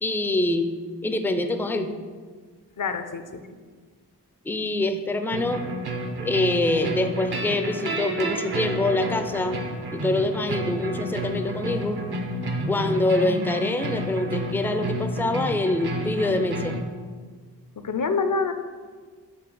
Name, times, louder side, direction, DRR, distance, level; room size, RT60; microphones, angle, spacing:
voice 1, 0.0-0.7 1.0-1.9 4.4-5.6 6.2-9.6 9.9-12.0 12.7-16.8, left 2 dB, 5° left, 7 dB, 0.4 m, -25 dB
voice 2, 2.8-3.6 17.8-18.5, left 4 dB, 50° left, 8 dB, 0.6 m, -27 dB
sound 1, 5.3-16.8, right 1 dB, 65° right, 0.8 m, -30 dB
7.9 x 3.2 x 4.9 m, 1.5 s
wide cardioid pair, 55°, 41 cm